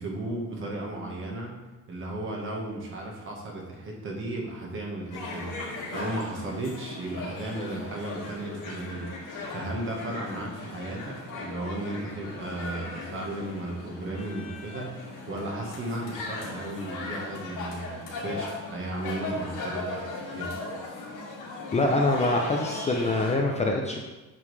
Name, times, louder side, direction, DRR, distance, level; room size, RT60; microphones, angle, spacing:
voice 1, 0.0-1.5 1.9-20.5, right 1 dB, 40° right, -1 dB, 1.5 m, -35 dB
sound 1, 5.1-23.3, left 2 dB, 75° left, 2.2 m, -38 dB
voice 2, 21.7-24.0, left 2 dB, 20° left, 1 dB, 0.5 m, -24 dB
8.4 x 5.2 x 3.3 m, 1.1 s
cardioid pair, 160°, 33 cm